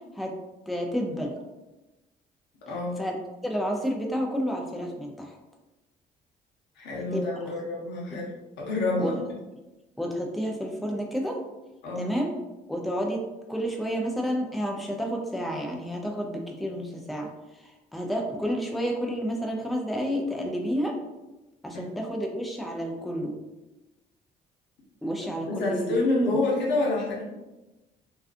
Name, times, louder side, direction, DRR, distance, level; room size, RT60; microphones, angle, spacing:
voice 1, 0.7-1.4 3.0-3.1 3.4-5.4 7.1-7.5 8.2-8.3 9.0-9.2 10.0-11.4 11.9-12.3 12.7-13.2 13.5-17.3 17.6-21.0 21.6-23.3 25.0-25.9 26.3-26.4, equal, ahead, 1 dB, 0.5 m, -30 dB
voice 2, 2.7-3.0 6.8-8.3 8.6-9.2 11.8-12.1 21.7-21.8 25.5-27.2, left 2 dB, 80° left, -4 dB, 0.8 m, -27 dB
2.4 x 2.3 x 2.4 m, 1.0 s
supercardioid pair, 65°, 18 cm